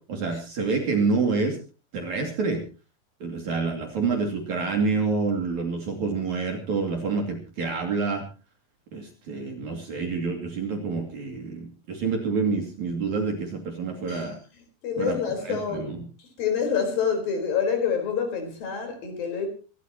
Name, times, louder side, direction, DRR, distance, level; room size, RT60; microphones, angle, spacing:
voice 1, 0.1-1.6 1.9-2.6 3.2-8.2 8.9-14.4 15.0-15.2 15.4-16.0, right 4 dB, 50° right, 3.7 m, -27 dB
voice 2, 14.8-15.9 16.2-19.5, left 6 dB, 65° left, 6.1 m, -27 dB
25.5 x 13.0 x 3.0 m
omnidirectional pair, 4.5 m